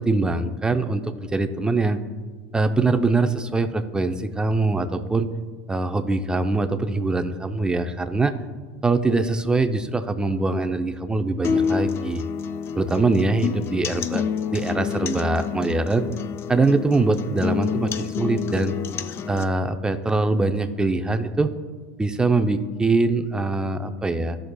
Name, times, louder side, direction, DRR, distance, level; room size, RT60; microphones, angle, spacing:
voice 1, 0.0-2.0 2.5-5.3 5.7-8.4 8.8-12.2 12.8-14.2 14.5-16.1 16.5-18.8 19.3-21.5 22.0-24.4, right 3 dB, 15° right, 9 dB, 0.6 m, -23 dB
sound 1, 11.4-19.4, left 7 dB, 40° left, 0.4 m, -28 dB
14.5 x 6.3 x 2.2 m, 1.5 s
hypercardioid pair, 90°, 6 cm